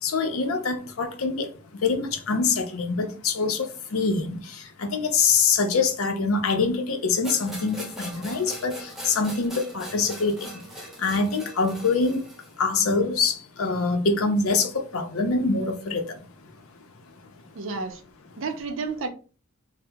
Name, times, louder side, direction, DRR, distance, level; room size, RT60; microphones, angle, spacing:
voice 1, 0.0-12.3 12.6-16.2, left 4 dB, 85° left, 0.6 m, -25 dB
sound 1, 7.2-12.6, equal, ahead, 0.7 m, -40 dB
voice 2, 17.5-18.0 18.4-19.1, right 4 dB, 65° right, 0.5 m, -31 dB
2.8 x 2.1 x 3.3 m
head